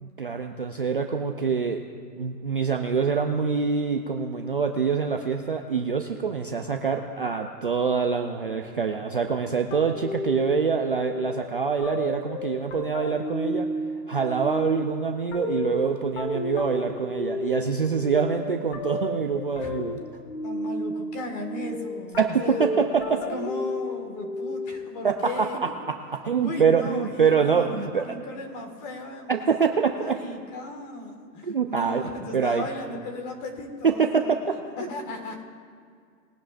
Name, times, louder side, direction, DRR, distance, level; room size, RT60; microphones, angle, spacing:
voice 1, 0.0-1.8 2.2-13.7 14.1-20.0 22.2-23.3 25.0-25.5 26.2-28.0 29.3-30.2 31.4-32.0 32.3-32.7 33.8-34.4, right 6 dB, 35° right, 4 dB, 0.4 m, -25 dB
sound 1, 9.7-25.1, left 1 dB, 40° left, 1.8 m, -32 dB
voice 2, 20.4-22.7 23.1-25.7 26.4-34.4 34.8-35.4, left 1 dB, 25° left, 3 dB, 1.8 m, -37 dB
21.5 x 10.5 x 2.5 m, 2.1 s
hypercardioid pair, 165°, 49 cm